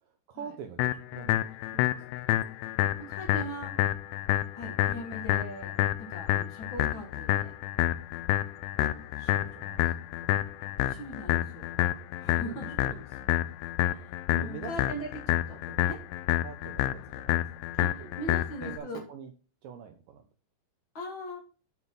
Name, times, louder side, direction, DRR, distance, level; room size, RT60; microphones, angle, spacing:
voice 1, 0.0-1.4 1.7-2.2 8.8-10.5 12.4-13.4 14.3-15.1 15.5-15.9 16.4-18.1 18.6-19.3 19.6-20.2, right 7 dB, 80° right, 5 dB, 2.0 m, -46 dB
sound 1, 0.8-18.8, left 14 dB, 90° left, 2.7 m, -29 dB
voice 2, 3.0-3.7 4.5-7.5 10.8-11.8 12.2-12.7 13.8-16.0 17.8-19.0 20.9-21.4, equal, 60° left, 1 dB, 1.2 m, -40 dB
9.3 x 3.9 x 5.9 m, 0.36 s
omnidirectional pair, 4.8 m